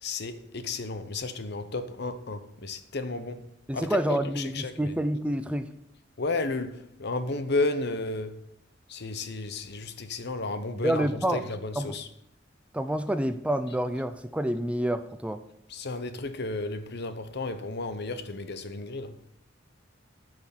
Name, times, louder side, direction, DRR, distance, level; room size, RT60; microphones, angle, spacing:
voice 1, 0.0-3.4 3.7-4.9 6.2-8.3 8.9-11.1 11.3-12.0 15.7-19.1, left 3 dB, 60° left, 0.9 m, -33 dB
voice 2, 3.7-5.7 10.8-11.4 11.8-12.0 12.7-15.4, right 1 dB, 5° right, 0.5 m, -28 dB
10.0 x 6.2 x 7.2 m
head